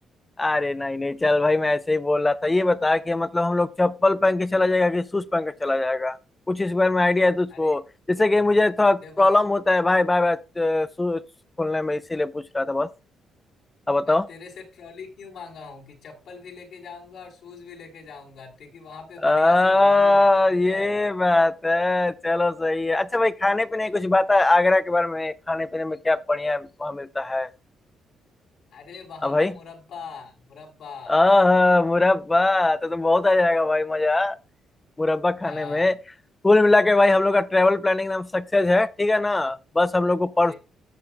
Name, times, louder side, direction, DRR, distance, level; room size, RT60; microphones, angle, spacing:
voice 1, 0.4-6.2 6.5-7.8 8.1-11.2 11.6-12.9 13.9-14.3 19.2-27.5 29.2-29.5 31.1-34.4 35.0-35.9 36.4-40.5, left 2 dB, 15° left, 0.5 m, -21 dB
voice 2, 9.0-9.3 14.0-20.9 28.7-31.1 35.4-35.9 40.5-40.6, left 5 dB, 70° left, 4.3 m, -42 dB
14.0 x 7.8 x 2.3 m
cardioid pair, 90°, 0 cm